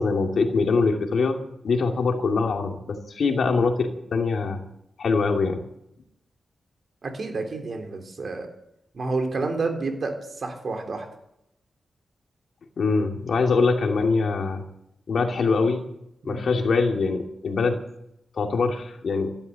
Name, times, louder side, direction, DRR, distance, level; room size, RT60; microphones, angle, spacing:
voice 1, 0.0-1.4 1.6-4.6 5.0-5.6 12.8-14.6 15.1-15.8 16.2-17.8 18.3-19.4, left 4 dB, 70° left, 3 dB, 2.5 m, -23 dB
voice 2, 7.0-8.5 8.9-11.1 16.3-16.4, right 3 dB, 55° right, 4 dB, 3.6 m, -29 dB
14.0 x 12.0 x 8.3 m, 0.79 s
wide cardioid pair, 105°, 0 cm